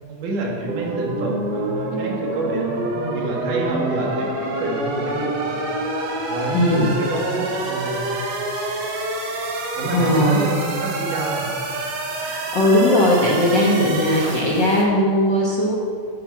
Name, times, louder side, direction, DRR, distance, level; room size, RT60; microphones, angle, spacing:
voice 1, 0.1-5.6 6.3-8.0 9.7-11.6, right 2 dB, 75° right, 0 dB, 3.3 m, -28 dB
sound 1, 0.7-14.8, right 2 dB, 60° right, 2.5 m, -27 dB
voice 2, 6.5-7.0 9.9-10.5 12.2-15.8, left 1 dB, 55° left, -4 dB, 1.2 m, -18 dB
10.5 x 8.4 x 7.4 m, 2.3 s
omnidirectional pair, 3.7 m